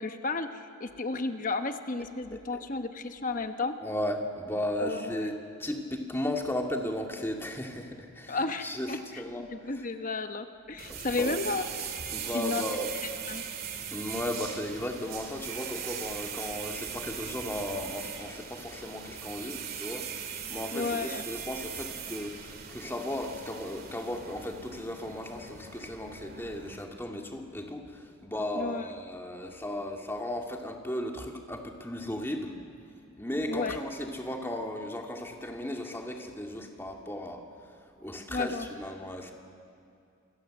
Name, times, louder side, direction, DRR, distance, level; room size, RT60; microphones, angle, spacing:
voice 1, 0.0-3.8 4.8-5.3 8.3-9.2 9.5-11.6 12.3-12.8 13.3-13.4 20.7-21.2 28.5-28.9 33.5-33.8 38.3-38.8, left 3 dB, 35° left, 7 dB, 1.1 m, -33 dB
voice 2, 3.8-5.3 5.6-9.5 10.9-11.4 12.1-12.9 13.9-20.1 20.5-32.6 33.2-37.4 38.0-39.3, left 1 dB, 10° left, 2 dB, 2.3 m, -35 dB
sound 1, 10.8-26.8, right 7 dB, 45° right, 2.4 m, -40 dB
27.5 x 24.0 x 7.8 m, 2.4 s
head